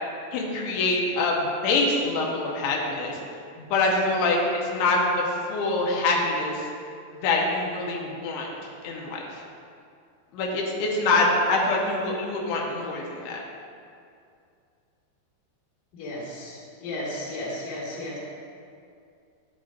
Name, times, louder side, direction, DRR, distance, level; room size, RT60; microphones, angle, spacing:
voice 1, 0.3-3.2 3.6-6.6 7.1-8.5 8.8-9.2 10.3-13.4, left 2 dB, 90° left, -1 dB, 3.3 m, -25 dB
voice 2, 15.9-18.2, left 1 dB, 55° left, -7 dB, 3.2 m, -34 dB
10.5 x 9.0 x 2.6 m, 2.4 s
omnidirectional pair, 5.0 m